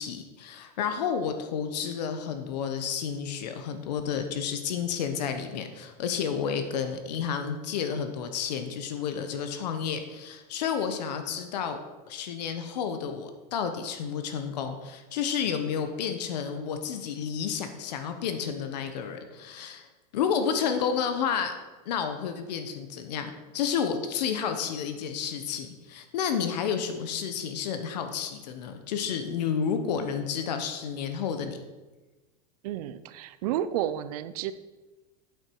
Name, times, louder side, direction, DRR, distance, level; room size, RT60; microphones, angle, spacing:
voice 1, 0.0-11.8 12.1-19.9 20.1-21.5 21.8-31.6, left 7 dB, 85° left, 7 dB, 1.2 m, -31 dB
voice 2, 32.6-34.5, right 11 dB, 65° right, 13 dB, 0.6 m, -31 dB
8.3 x 8.2 x 4.8 m, 1.2 s
supercardioid pair, 155°, 21 cm